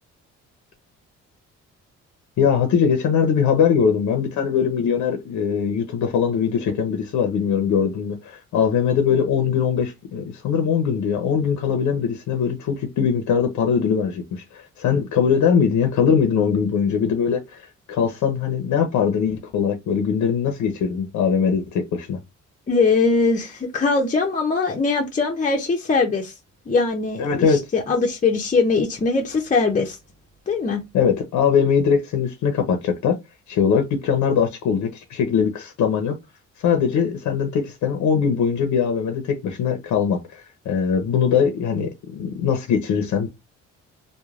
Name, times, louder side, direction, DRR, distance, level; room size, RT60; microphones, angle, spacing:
voice 1, 2.4-22.2 27.2-27.6 30.9-33.2 33.5-36.2 36.6-43.3, left 7 dB, 75° left, 0.7 m, -21 dB
voice 2, 22.7-26.3 26.7-30.0 30.5-30.8, left 4 dB, 25° left, 0.6 m, -21 dB
3.0 x 2.2 x 2.3 m
cardioid pair, 90°, 30 cm